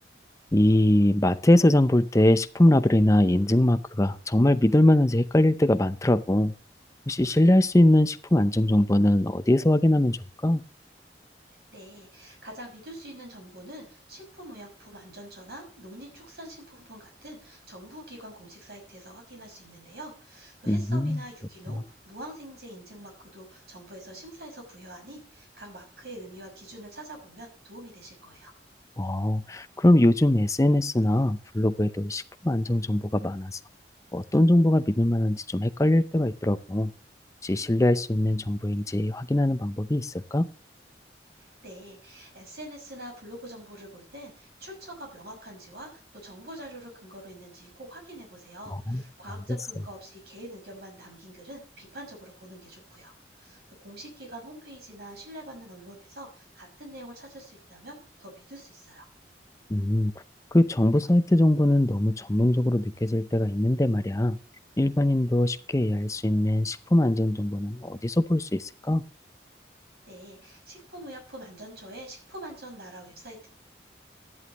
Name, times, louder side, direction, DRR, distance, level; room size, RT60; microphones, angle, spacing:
voice 1, 0.5-6.5 7.1-10.6 20.7-21.2 21.7-21.8 29.0-33.6 34.1-36.9 37.4-40.5 48.9-49.0 59.7-60.1 60.5-64.4 64.8-69.0, left 1 dB, 20° left, 0.6 m, -22 dB
voice 2, 11.7-28.5 41.4-53.1 53.4-59.0 70.1-73.5, right 1 dB, 60° right, 6.0 m, -45 dB
13.0 x 11.0 x 3.0 m
head